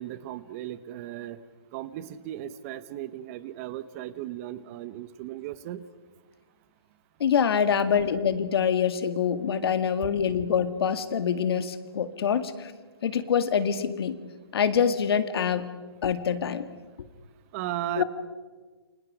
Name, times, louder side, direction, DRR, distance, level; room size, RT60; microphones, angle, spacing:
voice 1, 0.0-1.4 1.7-5.9 17.5-18.0, right 13 dB, 35° right, 15 dB, 1.0 m, -36 dB
voice 2, 7.2-12.7 13.0-14.2 14.5-15.7 16.0-16.6 18.0-18.1, left 7 dB, 65° left, 10 dB, 2.0 m, -25 dB
29.0 x 24.5 x 5.0 m, 1.3 s
hypercardioid pair, 145°, 14 cm